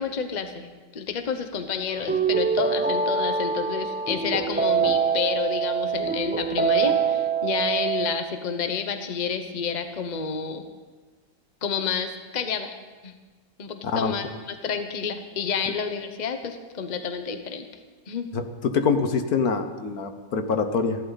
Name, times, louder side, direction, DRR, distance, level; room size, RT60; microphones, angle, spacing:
voice 1, 0.0-10.6 11.6-12.7 13.0-13.1 13.6-17.7 18.1-18.3, left 6 dB, 30° left, 7 dB, 1.0 m, -29 dB
sound 1, 1.9-8.3, right 6 dB, 10° right, 0.5 m, -25 dB
voice 2, 18.3-21.0, left 5 dB, 65° left, 7 dB, 1.5 m, -25 dB
29.5 x 11.5 x 4.1 m, 1.3 s
omnidirectional pair, 1.8 m